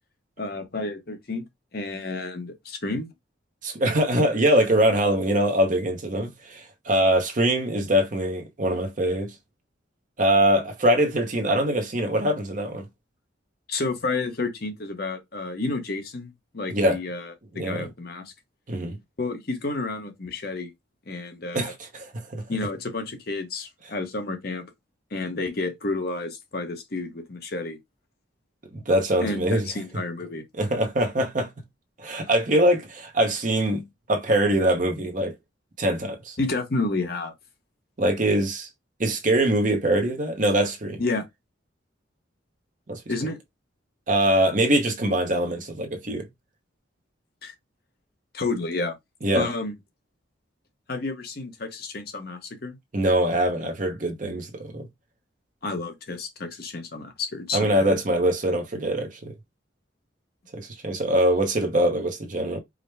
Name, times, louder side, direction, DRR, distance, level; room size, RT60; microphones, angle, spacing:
voice 1, 0.4-1.5 1.7-3.1 13.7-18.3 19.2-20.7 21.1-21.7 22.5-24.7 25.1-27.8 29.2-30.4 36.4-37.3 41.0-41.2 43.1-43.4 47.4-47.5 48.3-49.0 49.3-49.7 50.9-52.8 55.6-57.9, left 3 dB, 50° left, 0.9 m, -30 dB
voice 2, 3.6-9.3 10.2-12.9 16.7-17.0 17.5-17.9 18.7-19.0 21.5-22.4 28.7-29.7 30.6-31.5 32.0-35.3 35.8-36.4 38.0-38.7 39.0-41.0 42.9-43.0 44.1-46.3 49.2-49.5 52.9-54.9 57.5-59.3 60.5-62.6, right 1 dB, 40° right, 0.8 m, -23 dB
4.9 x 2.1 x 3.2 m
head